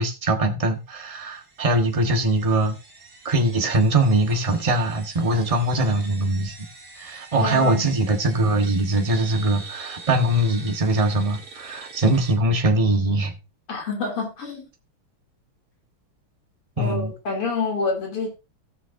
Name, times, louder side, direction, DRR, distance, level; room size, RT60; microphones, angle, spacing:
voice 1, 0.0-2.8 3.2-6.5 7.0-13.3 16.8-17.1, right 1 dB, 20° right, 1.0 m, -22 dB
sound 1, 1.1-12.3, right 3 dB, 45° right, 3.3 m, -44 dB
voice 2, 7.4-7.9 13.7-14.6 16.8-18.3, left 4 dB, 85° left, 3.8 m, -27 dB
18.0 x 6.2 x 2.7 m
omnidirectional pair, 2.4 m